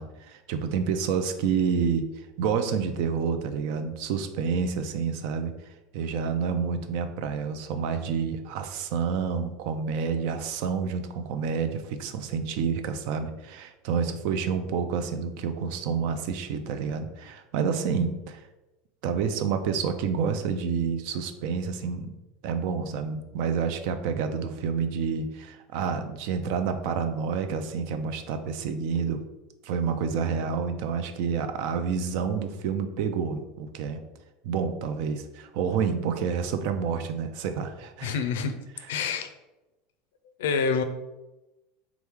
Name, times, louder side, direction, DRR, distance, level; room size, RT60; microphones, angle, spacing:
voice 1, 0.0-18.5 19.0-22.1 22.4-29.2 29.6-34.0 34.4-38.2, right 6 dB, 65° right, 8 dB, 0.4 m, -29 dB
voice 2, 38.0-38.5 38.9-39.3 40.4-40.8, left 5 dB, 85° left, 9 dB, 0.5 m, -26 dB
3.5 x 3.1 x 3.5 m, 1.0 s
supercardioid pair, 120°, 0 cm